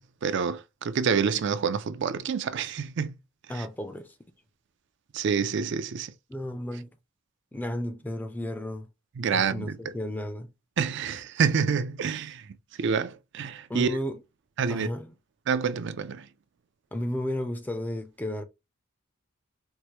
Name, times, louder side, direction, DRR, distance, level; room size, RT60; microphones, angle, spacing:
voice 1, 0.2-3.1 3.6-3.7 5.1-6.1 9.2-9.8 10.8-12.5 12.8-14.0 14.6-14.9 15.5-16.3, right 6 dB, 60° right, 0.4 m, -27 dB
voice 2, 3.5-4.1 6.3-6.9 7.5-8.9 9.3-10.5 13.7-14.2 14.7-15.1 16.9-18.4, left 1 dB, 10° left, 0.4 m, -33 dB
4.6 x 2.1 x 2.8 m
head